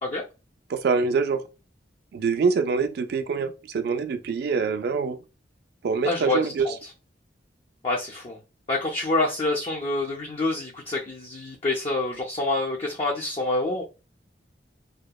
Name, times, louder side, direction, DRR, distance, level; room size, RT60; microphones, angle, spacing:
voice 1, 0.7-1.4 2.1-5.2 5.8-6.7, right 5 dB, 60° right, 0.3 m, -25 dB
voice 2, 6.0-6.7 7.8-8.4 8.7-13.8, left 2 dB, 35° left, 0.4 m, -27 dB
2.8 x 2.1 x 2.2 m
head